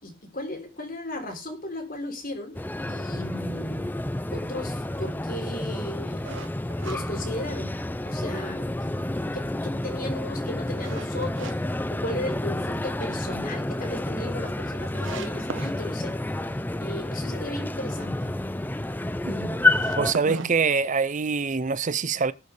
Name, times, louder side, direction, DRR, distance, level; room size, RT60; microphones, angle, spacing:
voice 1, 0.0-2.6 2.9-3.9 4.3-6.3 6.8-7.8 8.0-8.7 9.3-11.6 11.9-16.2 16.8-18.3 19.3-19.6 20.2-20.5, left 1 dB, 45° left, 3.6 m, -36 dB
sound 1, 2.5-20.1, left 1 dB, 10° left, 0.5 m, -29 dB
sound 2, 6.2-8.0 8.4-8.5 9.0-11.5 11.9-12.7 13.0-13.1 13.5-13.6 13.8-13.9 14.5-14.6 14.9-15.7 19.5-21.3, right 3 dB, 70° right, 1.3 m, -39 dB
voice 2, 20.0-22.3, right 5 dB, 40° right, 0.5 m, -24 dB
19.0 x 6.6 x 3.4 m
head